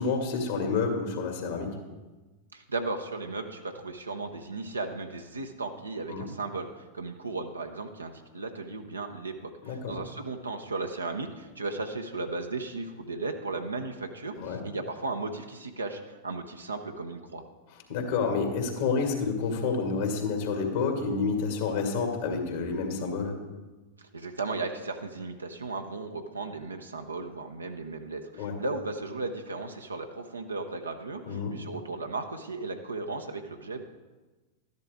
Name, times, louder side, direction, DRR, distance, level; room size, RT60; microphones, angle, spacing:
voice 1, 0.0-1.8 6.1-6.3 9.6-9.9 14.4-14.6 17.9-23.4 28.3-28.6 31.2-31.6, left 4 dB, 60° left, 2 dB, 2.3 m, -29 dB
voice 2, 2.5-17.4 24.0-33.8, right 3 dB, 85° right, 4 dB, 0.7 m, -36 dB
12.5 x 10.5 x 3.6 m, 1.2 s
figure-of-eight pair, 90°, 0 cm